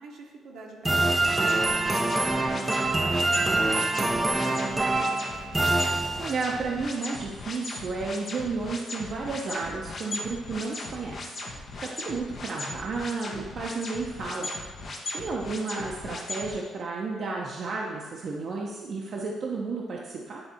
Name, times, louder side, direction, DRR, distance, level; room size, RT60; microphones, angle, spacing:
voice 1, 0.0-1.4 1.7-5.3, right 3 dB, 80° right, -1 dB, 1.3 m, -46 dB
sound 1, 0.9-6.6, right 2 dB, 15° right, 0.6 m, -25 dB
sound 2, 1.2-16.5, left 2 dB, 55° left, 1.2 m, -38 dB
voice 2, 5.7-11.4 11.8-14.5 15.1-20.4, right 3 dB, 55° right, -2 dB, 0.8 m, -32 dB
9.7 x 3.3 x 4.3 m, 1.4 s
cardioid pair, 90°, 0 cm